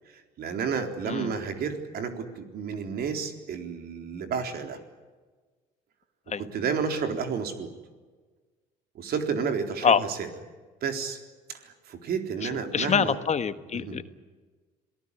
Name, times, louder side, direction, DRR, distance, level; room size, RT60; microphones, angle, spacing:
voice 1, 0.1-4.8 6.4-7.7 8.9-10.3 10.8-11.2 11.5-13.2 13.7-14.0, right 6 dB, 65° right, 6 dB, 3.9 m, -31 dB
voice 2, 12.4-14.0, left 7 dB, 40° left, 11 dB, 1.4 m, -25 dB
27.5 x 18.0 x 10.0 m, 1.4 s
supercardioid pair, 75°, 17 cm